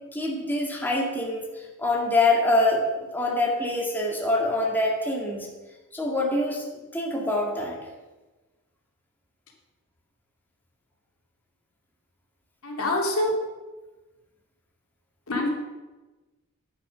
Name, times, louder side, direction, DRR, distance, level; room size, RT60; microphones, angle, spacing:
voice 1, 0.1-2.8 3.1-5.5 5.9-6.6 6.9-7.8, left 2 dB, 10° left, -2 dB, 2.0 m, -25 dB
voice 2, 12.6-13.3 15.3-15.5, left 2 dB, 70° left, 0 dB, 2.6 m, -25 dB
11.0 x 8.7 x 6.2 m, 1.2 s
head